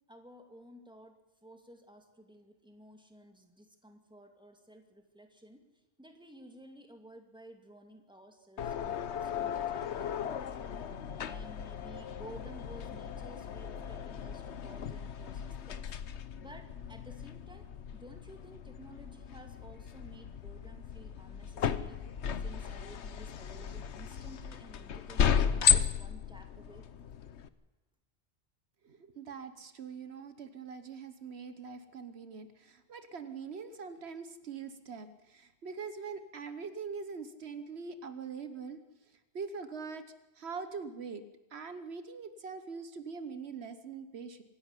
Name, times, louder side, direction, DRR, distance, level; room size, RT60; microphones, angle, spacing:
voice 1, 0.1-5.6 6.0-10.6 11.2-15.9 16.4-22.0 22.4-26.9, right 1 dB, 5° right, 4 dB, 2.3 m, -54 dB
sound 1, 8.6-27.5, left 7 dB, 85° left, 1.2 m, -35 dB
voice 2, 28.8-38.8 39.3-40.1 40.4-41.2 41.5-44.4, right 5 dB, 75° right, 11 dB, 1.3 m, -43 dB
25.0 x 11.5 x 9.8 m, 1.0 s
omnidirectional pair, 1.1 m